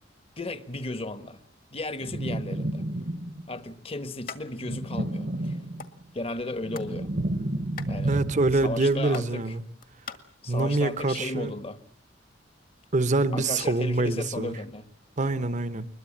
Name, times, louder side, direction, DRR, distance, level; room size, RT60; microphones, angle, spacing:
voice 1, 0.4-1.4 1.7-2.8 3.5-5.6 6.1-7.1 7.8-8.2 8.5-9.5 10.4-11.8 13.3-14.9, left 2 dB, 30° left, 1.2 m, -35 dB
sound 1, 2.0-3.6 4.6-6.0 6.4-8.8, right 1 dB, 55° right, 1.3 m, -31 dB
sound 2, 4.3-4.4 4.8-4.9 5.1-5.9 6.4-7.0 7.2-10.2, left 6 dB, 50° left, 1.8 m, -42 dB
voice 2, 8.1-9.6 10.5-11.5 12.9-14.5 15.2-15.9, right 2 dB, 40° right, 0.9 m, -25 dB
22.0 x 21.5 x 8.7 m
head